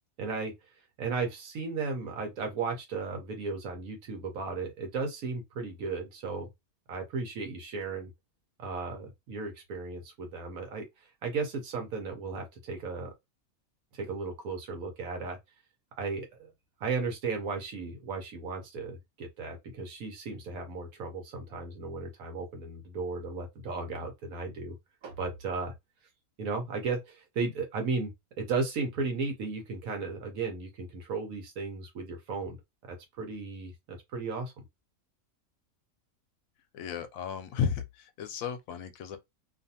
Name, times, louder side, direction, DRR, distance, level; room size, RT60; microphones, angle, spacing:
voice 1, 0.2-0.5 1.0-6.5 6.9-8.1 8.6-10.8 11.2-13.1 13.9-15.4 16.0-16.5 16.8-24.8 25.0-25.7 26.4-28.1 28.4-32.6 32.9-34.6, right 4 dB, 90° right, 1.2 m, -35 dB
voice 2, 36.7-39.2, left 7 dB, 80° left, 1.0 m, -34 dB
2.6 x 2.5 x 2.7 m
omnidirectional pair, 1.4 m